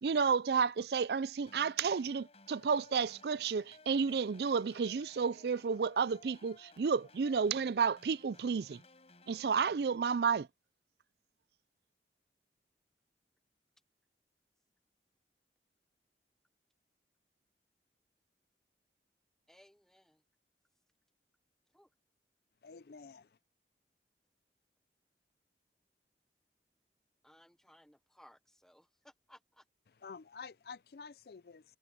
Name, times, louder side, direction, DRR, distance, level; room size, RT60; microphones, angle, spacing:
voice 1, 0.0-8.8 9.3-10.5, right 5 dB, 65° right, 0.4 m, -31 dB
sound 1, 1.5-9.5, left 2 dB, 35° left, 7.1 m, -60 dB
voice 2, 19.5-20.2 21.7-21.9 27.2-29.6, equal, 5° left, 0.7 m, -62 dB
voice 3, 22.6-23.3 30.0-31.6, left 5 dB, 60° left, 0.4 m, -49 dB
head